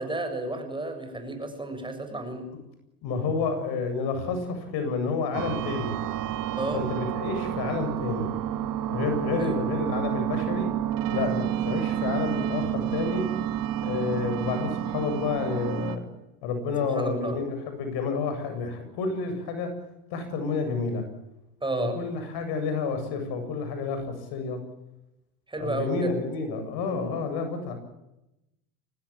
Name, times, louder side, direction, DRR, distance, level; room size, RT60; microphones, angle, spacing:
voice 1, 0.0-2.5 6.6-6.9 9.4-9.6 16.9-17.4 21.6-22.0 25.5-26.1 26.9-27.2, right 2 dB, 10° right, 6 dB, 7.2 m, -32 dB
voice 2, 3.0-5.9 6.7-8.3 8.9-10.7 11.1-13.3 13.8-16.0 16.4-19.7 20.1-21.0 21.8-24.6 25.5-27.7, left 4 dB, 55° left, 7 dB, 7.9 m, -29 dB
sound 1, 5.3-16.0, right 11 dB, 45° right, 2.2 m, -30 dB
24.5 x 19.5 x 8.7 m, 0.90 s
hypercardioid pair, 95°, 45 cm